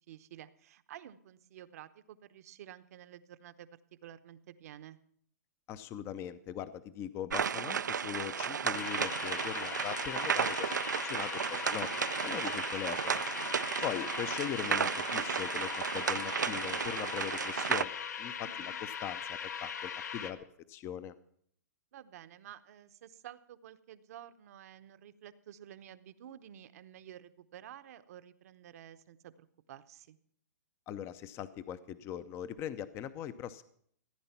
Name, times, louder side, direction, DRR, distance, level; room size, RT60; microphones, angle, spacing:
voice 1, 0.1-3.7 4.0-5.0 13.6-13.9 18.4-18.8 21.9-30.2, right 11 dB, 60° right, 12 dB, 0.8 m, -51 dB
voice 2, 5.7-11.9 12.2-13.2 13.8-20.4 20.7-21.1 30.9-33.6, left 10 dB, 25° left, 15 dB, 0.6 m, -41 dB
sound 1, 7.3-17.8, right 7 dB, 90° right, 0.4 m, -33 dB
sound 2, 8.7-20.3, left 7 dB, 70° left, 1.1 m, -40 dB
15.0 x 9.5 x 5.8 m, 0.64 s
hypercardioid pair, 125°, 10 cm